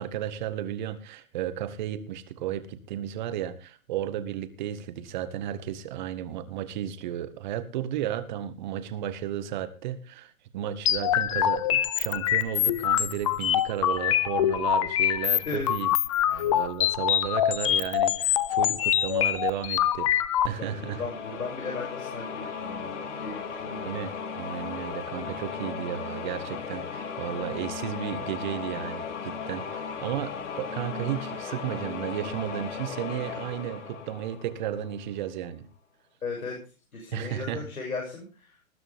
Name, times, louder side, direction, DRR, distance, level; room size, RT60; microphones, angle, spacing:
voice 1, 0.0-15.9 16.3-20.1 20.5-21.0 23.8-35.7 37.1-37.7, right 11 dB, 35° right, 12 dB, 1.8 m, -33 dB
sound 1, 10.9-20.5, left 11 dB, 25° left, 0.6 m, -25 dB
sound 2, 20.5-35.1, left 6 dB, 60° left, 3.2 m, -36 dB
voice 2, 20.6-23.9 36.2-36.6 36.9-38.6, left 4 dB, 85° left, 0 dB, 7.1 m, -36 dB
20.0 x 11.0 x 3.6 m, 0.34 s
hypercardioid pair, 150°, 41 cm